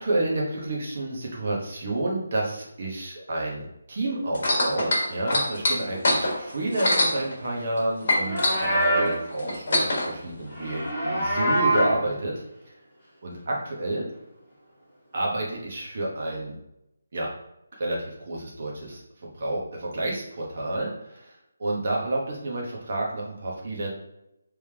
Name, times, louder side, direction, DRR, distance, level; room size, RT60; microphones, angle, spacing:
voice 1, 0.0-12.7 13.2-14.1 15.1-16.6 17.1-17.3 17.7-21.3 21.6-23.9, right 1 dB, 45° right, -3 dB, 0.9 m, -30 dB
sound 1, 4.3-7.8 8.1-10.1 10.9-11.0, left 1 dB, 45° left, 1.3 m, -24 dB
Livestock farm animals working animals, 8.1-9.2 10.5-12.0, right 1 dB, ahead, 1.4 m, -25 dB
3.3 x 3.3 x 3.3 m, 0.84 s
hypercardioid pair, 170°, 0 cm